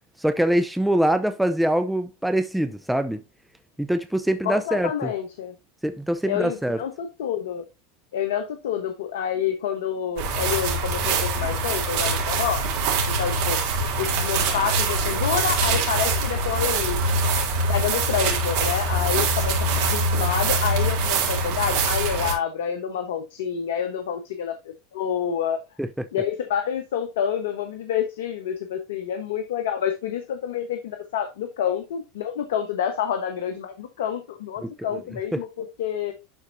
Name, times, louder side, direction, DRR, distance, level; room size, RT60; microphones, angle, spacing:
voice 1, 0.2-3.2 3.8-5.1 5.8-6.8 25.8-25.9 34.6-34.7 35.3-35.4, right 1 dB, 5° right, 0.7 m, -23 dB
voice 2, 4.4-5.5 6.3-7.6 8.1-12.6 13.1-13.6 14.0-17.1 17.7-25.6 26.1-36.1, left 8 dB, 80° left, 1.2 m, -28 dB
sound 1, 10.2-22.3, right 3 dB, 65° right, 3.6 m, -24 dB
11.5 x 4.5 x 2.7 m
hypercardioid pair, 105°, 0 cm